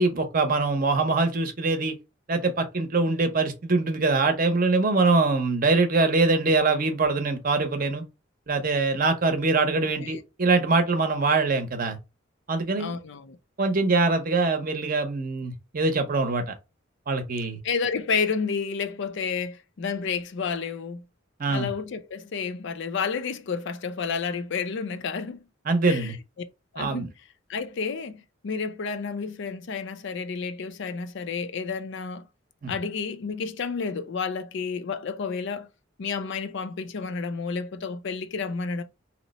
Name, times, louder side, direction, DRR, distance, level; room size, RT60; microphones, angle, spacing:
voice 1, 0.0-1.9 2.3-8.0 8.5-12.0 12.5-12.9 13.6-16.5 17.1-17.6 21.4-21.7 25.7-26.2 26.8-27.1 32.6-32.7, right 3 dB, 45° right, 0.7 m, -23 dB
voice 2, 9.8-10.2 12.7-13.4 17.6-21.0 21.5-25.4 25.8-26.2 26.7-27.1 27.5-32.2 32.7-35.7 36.0-38.8, left 5 dB, 65° left, 0.4 m, -30 dB
2.8 x 2.1 x 4.0 m
head